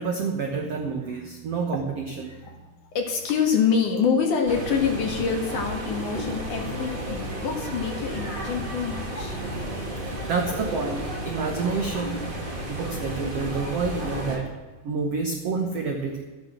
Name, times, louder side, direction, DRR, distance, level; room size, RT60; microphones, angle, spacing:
voice 1, 0.0-2.4 10.1-12.3 12.6-14.5 14.8-16.2, right 4 dB, 85° right, 2 dB, 1.3 m, -29 dB
voice 2, 2.9-9.4, left 6 dB, 55° left, 2 dB, 2.9 m, -26 dB
sound 1, 4.5-14.4, right 1 dB, 20° right, 1.3 m, -32 dB
13.0 x 10.5 x 6.4 m, 1.3 s
omnidirectional pair, 4.8 m